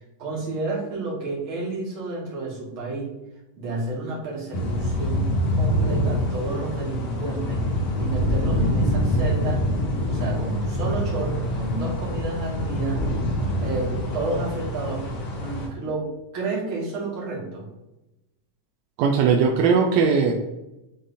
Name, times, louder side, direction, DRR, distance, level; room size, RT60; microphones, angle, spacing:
voice 1, 0.2-3.1 3.6-7.7 8.0-9.6 10.1-13.0 13.6-15.1 15.4-17.7, right 2 dB, 45° right, -6 dB, 2.3 m, -31 dB
sound 1, 4.5-15.7, equal, 70° left, 2.6 m, -25 dB
voice 2, 19.0-20.3, right 5 dB, 80° right, 3 dB, 1.6 m, -19 dB
9.6 x 3.8 x 2.6 m, 0.96 s
omnidirectional pair, 3.7 m